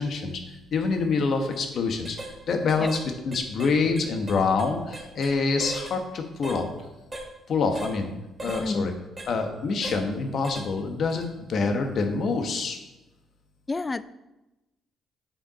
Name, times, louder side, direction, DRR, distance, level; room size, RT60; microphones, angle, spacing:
voice 1, 0.0-2.2 2.5-3.0 3.2-6.7 7.5-8.1 8.4-8.9 9.3-12.8, left 4 dB, 60° left, 5 dB, 1.2 m, -26 dB
sound 1, 1.4-1.6 2.0-2.3 2.7-3.1 3.3-5.3 5.6-6.0 6.4-6.6 7.1-7.3 7.8-8.0 8.4-8.7 9.2-9.3 9.8-10.0 10.4-10.7 11.1-11.3, right 1 dB, 20° right, 1.4 m, -38 dB
voice 2, 8.6-9.0 13.7-14.0, left 3 dB, 25° left, 16 dB, 0.3 m, -29 dB
9.0 x 5.0 x 4.1 m, 1.0 s
cardioid pair, 90°, 0 cm